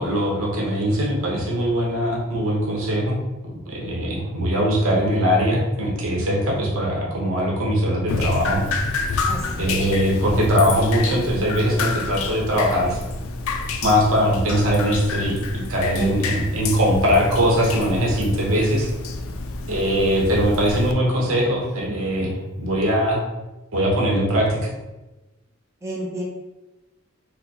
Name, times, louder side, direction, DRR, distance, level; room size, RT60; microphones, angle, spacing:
voice 1, 0.0-3.2 3.7-8.6 9.6-13.0 13.8-18.9 19.7-23.2 23.7-24.7, equal, 75° right, -2 dB, 0.9 m, -21 dB
Drip, 8.1-20.9, left 3 dB, 75° left, 0.4 m, -29 dB
voice 2, 9.3-9.7 15.9-16.5 25.8-26.2, right 1 dB, 15° right, -3 dB, 0.4 m, -29 dB
4.3 x 2.1 x 2.7 m, 1.0 s
head